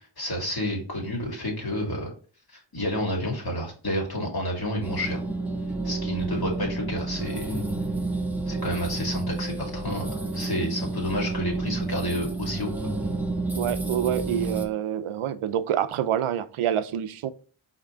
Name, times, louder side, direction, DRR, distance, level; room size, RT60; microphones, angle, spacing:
voice 1, 0.2-2.1 2.5-5.2 5.8-7.6 8.5-12.7, equal, 50° left, 2.3 m, -30 dB
sound 1, 4.8-14.7, right 2 dB, 5° right, 0.9 m, -30 dB
voice 2, 13.5-17.3, right 10 dB, 85° right, 0.6 m, -27 dB
4.9 x 3.0 x 3.5 m
cardioid pair, 55°, 49 cm